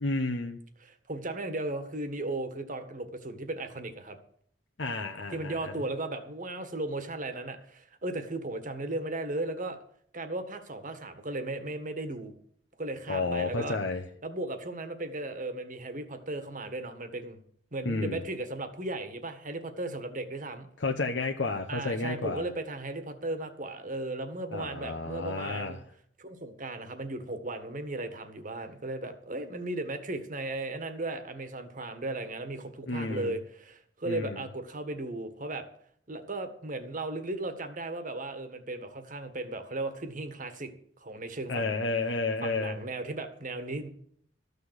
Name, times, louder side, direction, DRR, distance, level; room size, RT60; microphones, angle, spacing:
voice 1, 0.0-0.6 4.8-5.8 13.1-14.0 17.8-18.2 20.8-22.4 24.5-25.8 32.9-33.4 34.0-34.5 41.5-42.8, left 3 dB, 75° left, 3 dB, 1.0 m, -31 dB
voice 2, 0.8-4.2 5.3-9.8 10.1-12.3 12.8-13.8 14.2-17.4 17.7-20.7 21.7-25.8 26.2-35.6 36.1-40.7 41.0-41.9 42.4-43.9, right 2 dB, 45° right, 8 dB, 1.7 m, -36 dB
13.5 x 6.8 x 8.1 m, 0.64 s
head